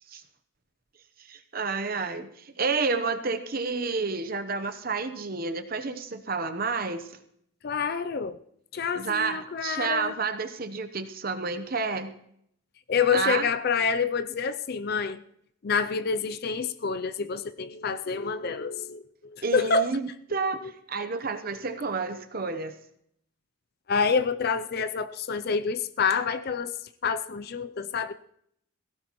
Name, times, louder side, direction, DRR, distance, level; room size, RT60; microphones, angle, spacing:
voice 1, 1.3-7.1 8.9-12.1 13.1-13.5 19.4-22.8, right 4 dB, 45° right, 10 dB, 0.9 m, -30 dB
voice 2, 7.6-8.4 8.7-10.1 12.9-15.2 15.6-19.9 20.6-20.7 23.9-28.1, left 5 dB, 50° left, 12 dB, 0.4 m, -27 dB
18.5 x 16.5 x 3.1 m, 0.70 s
head